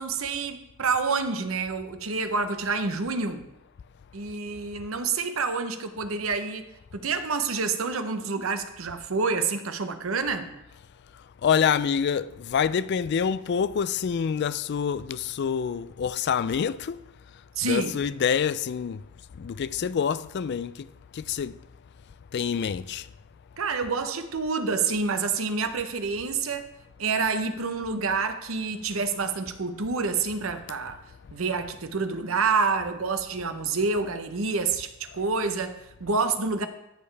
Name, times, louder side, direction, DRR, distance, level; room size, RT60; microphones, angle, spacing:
voice 1, 0.0-3.5 4.1-6.7 6.9-10.5 17.6-18.0 23.6-26.7 27.0-31.0 31.3-36.7, right 4 dB, 75° right, 0.8 m, -28 dB
voice 2, 11.4-17.0 17.6-19.0 19.4-20.9 21.1-21.5 22.3-23.1, left 7 dB, 55° left, 0.3 m, -26 dB
13.5 x 6.7 x 3.4 m
head